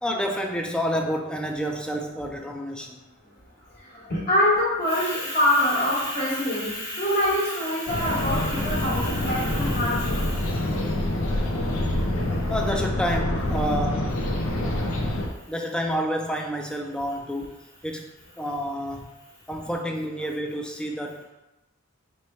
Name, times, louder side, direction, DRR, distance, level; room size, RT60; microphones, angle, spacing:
voice 1, 0.0-3.0 12.5-14.1 15.5-17.5 17.8-18.0 18.4-19.2 19.5-21.2, equal, 5° left, 2 dB, 0.4 m, -29 dB
voice 2, 3.8-10.6, left 1 dB, 50° left, -8 dB, 1.3 m, -25 dB
sound 1, 7.9-15.3, left 1 dB, 85° left, 0.6 m, -26 dB
3.2 x 3.0 x 4.3 m, 0.99 s
head